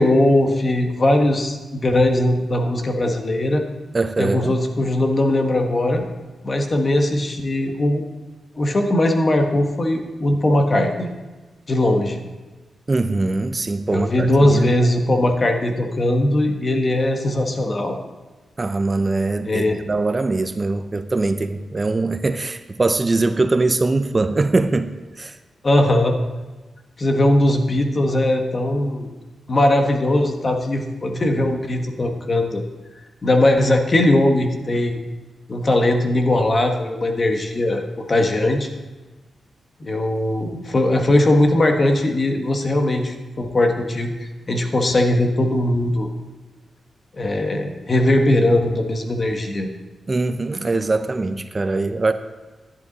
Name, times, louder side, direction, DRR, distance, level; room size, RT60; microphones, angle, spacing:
voice 1, 0.0-3.6 4.2-6.0 6.4-8.0 8.6-11.1 11.7-12.2 13.9-18.0 19.4-19.8 25.6-26.1 27.0-29.1 29.5-32.6 33.2-35.0 35.5-37.8 38.1-38.7 39.8-46.1 47.1-49.7, left 1 dB, 40° left, 4 dB, 1.4 m, -19 dB
voice 2, 3.9-4.6 12.9-14.3 14.5-14.7 18.6-24.9 25.2-25.4 50.1-52.1, right 3 dB, 30° right, 9 dB, 0.5 m, -22 dB
11.5 x 10.5 x 4.1 m, 1.2 s
cardioid pair, 95°, 0 cm